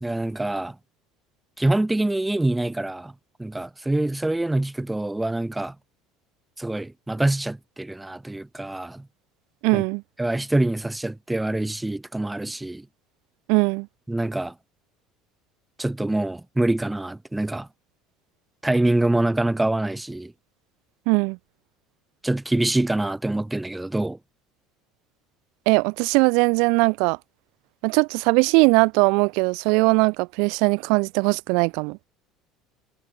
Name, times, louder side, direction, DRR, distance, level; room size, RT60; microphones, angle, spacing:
voice 1, 0.0-0.8 1.6-3.1 3.4-5.7 6.6-9.1 9.7-9.8 10.2-12.9 14.1-14.5 15.8-17.7 18.6-20.3 22.2-24.2, right 2 dB, 10° right, 3.3 m, -25 dB
voice 2, 9.6-10.0 13.5-13.9 21.1-21.4 25.7-27.2 27.8-32.0, right 32 dB, 75° right, 1.0 m, -20 dB
supercardioid pair, 90°, 0 cm